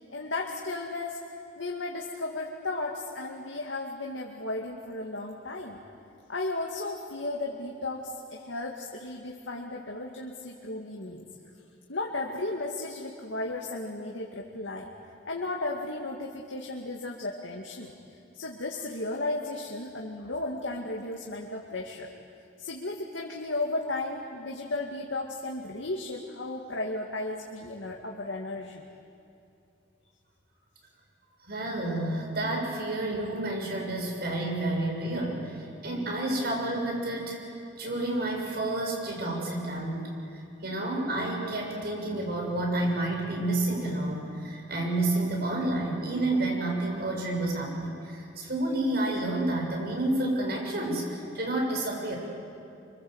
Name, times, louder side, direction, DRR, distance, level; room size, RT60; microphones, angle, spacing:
voice 1, 0.1-1.2 1.5-5.8 6.3-11.3 11.9-14.9 15.2-17.9 18.3-22.1 22.6-28.8, left 2 dB, 90° left, -1 dB, 2.2 m, -34 dB
voice 2, 31.5-37.4 37.8-40.0 40.3-52.2, right 2 dB, 55° right, 0 dB, 6.9 m, -30 dB
25.5 x 25.0 x 8.1 m, 2.6 s
head